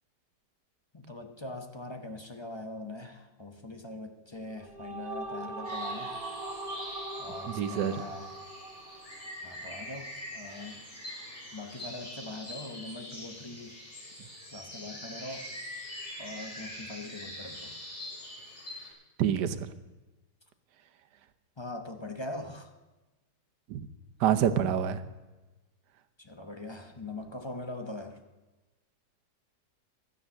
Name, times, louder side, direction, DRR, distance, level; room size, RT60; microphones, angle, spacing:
voice 1, 0.9-6.2 7.2-8.3 9.4-10.8 11.5-13.8 14.5-15.5 16.2-17.7 21.6-22.7 26.2-28.2, left 2 dB, 20° left, 5 dB, 0.8 m, -42 dB
sound 1, 4.4-9.9, right 2 dB, 60° right, 1.8 m, -40 dB
sound 2, 5.6-18.9, left 1 dB, 40° left, 3.4 m, -44 dB
voice 2, 7.5-8.0 19.2-19.7 23.7-23.9 24.2-25.0, right 9 dB, 85° right, 13 dB, 1.4 m, -27 dB
12.5 x 10.0 x 6.4 m, 1.1 s
omnidirectional pair, 1.8 m